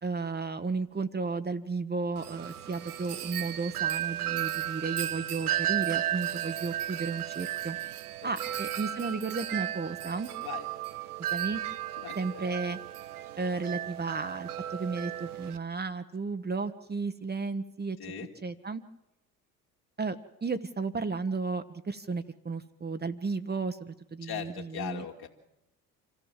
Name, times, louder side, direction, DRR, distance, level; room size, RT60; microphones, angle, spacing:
voice 1, 0.0-7.8 8.2-10.3 11.3-11.6 12.1-12.8 13.4-18.0 18.4-18.8 20.0-20.2 20.4-25.0, right 4 dB, 20° right, 9 dB, 1.1 m, -33 dB
Wind chime, 2.2-15.6, right 12 dB, 90° right, 0.7 m, -34 dB
voice 2, 8.2-8.6 10.4-10.7 12.0-12.5 18.0-18.3 24.2-25.3, left 9 dB, 60° left, 1 dB, 2.8 m, -40 dB
26.0 x 14.5 x 7.4 m, 0.93 s
hypercardioid pair, 55°, 44 cm